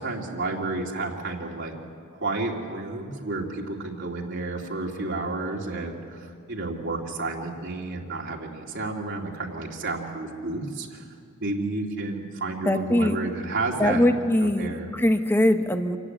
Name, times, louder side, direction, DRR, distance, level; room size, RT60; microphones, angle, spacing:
voice 1, 0.0-1.7 2.1-11.1 11.4-14.1 14.4-14.9, right 2 dB, 55° right, -2 dB, 2.6 m, -31 dB
voice 2, 12.6-13.2 13.8-16.0, left 1 dB, 10° left, 7 dB, 1.1 m, -22 dB
27.0 x 15.5 x 9.9 m, 2.4 s
head